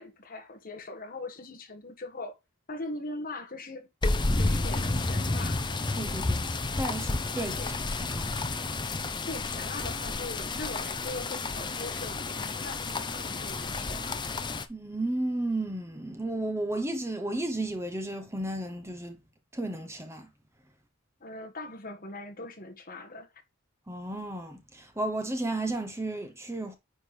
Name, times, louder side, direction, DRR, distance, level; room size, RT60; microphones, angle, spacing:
voice 1, 0.0-2.3 2.7-3.9 4.4-5.7 7.6-7.8 9.2-14.2 21.2-23.3, left 2 dB, 40° left, 1.6 m, -40 dB
sound 1, 4.0-14.7, left 3 dB, 20° left, 0.7 m, -31 dB
voice 2, 5.9-6.4 6.8-7.6 8.0-8.3 14.7-19.2 19.5-20.3 23.9-26.8, right 2 dB, 10° right, 1.1 m, -33 dB
9.6 x 4.3 x 3.3 m
head